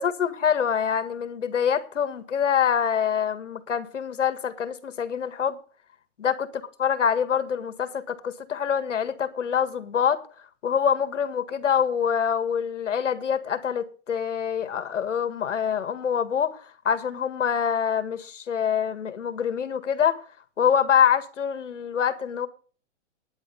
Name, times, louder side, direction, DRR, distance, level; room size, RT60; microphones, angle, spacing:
voice 1, 0.0-5.6 6.2-10.2 10.6-20.2 20.6-22.5, left 8 dB, 85° left, 1.8 m, -25 dB
10.5 x 10.0 x 5.5 m
hypercardioid pair, 155°, 36 cm